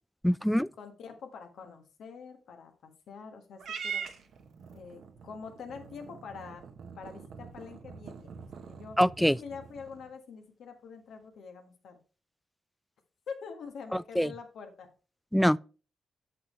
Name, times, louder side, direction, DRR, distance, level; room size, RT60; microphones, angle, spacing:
voice 1, 0.2-0.7 9.0-9.4 13.9-14.3 15.3-15.6, equal, 5° left, 0.3 m, -24 dB
voice 2, 0.8-4.0 4.7-6.6 7.0-8.3 8.7-9.0 9.4-12.0 13.3-14.9, left 5 dB, 75° left, 1.5 m, -45 dB
Purr / Meow, 3.6-10.1, right 6 dB, 70° right, 1.0 m, -43 dB
8.4 x 6.7 x 3.2 m
supercardioid pair, 50°, 0 cm